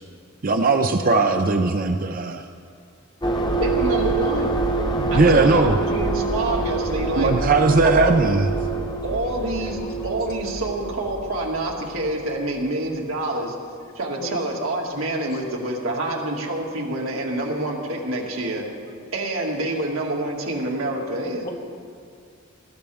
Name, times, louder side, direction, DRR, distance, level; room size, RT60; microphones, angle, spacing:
voice 1, 0.4-2.4 5.0-5.8 7.2-8.5, right 3 dB, 40° right, 5 dB, 0.6 m, -19 dB
sound 1, 3.2-12.7, right 3 dB, 20° left, 1.0 m, -26 dB
voice 2, 3.6-4.5 5.1-7.3 7.8-8.1 9.0-13.6 14.0-18.7 19.1-21.5, right 1 dB, 75° right, -1 dB, 2.2 m, -27 dB
voice 3, 8.6-8.9 9.6-9.9 14.2-14.4 21.4-21.5, left 1 dB, 45° left, -3 dB, 2.7 m, -37 dB
19.5 x 15.5 x 3.5 m, 2.2 s
head